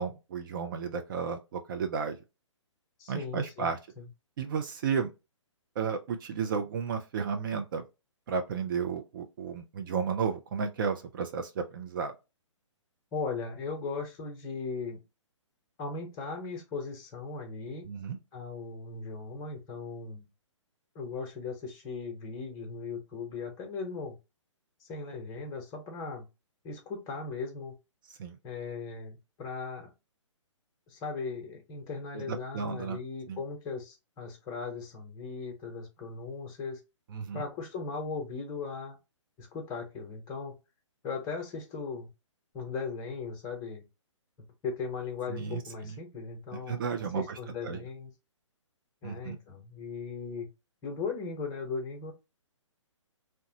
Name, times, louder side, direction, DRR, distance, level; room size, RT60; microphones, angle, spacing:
voice 1, 0.0-2.2 3.1-3.8 4.4-5.1 5.8-7.8 8.3-12.1 17.9-18.2 28.2-28.4 32.3-33.0 33.3-33.4 37.1-37.4 45.3-45.9 46.7-47.2 47.6-47.8 49.0-49.4, right 6 dB, 40° right, 0.5 m, -33 dB
voice 2, 3.0-4.1 13.1-15.0 15.8-17.9 18.3-20.2 20.9-24.2 24.8-26.3 26.6-27.7 28.4-29.9 30.9-36.8 37.3-39.0 39.4-40.5 41.0-42.1 42.5-43.8 44.6-46.8 47.1-48.1 49.0-50.5 50.8-52.1, left 4 dB, 20° left, 0.9 m, -38 dB
2.8 x 2.2 x 2.7 m
figure-of-eight pair, 135°, 16 cm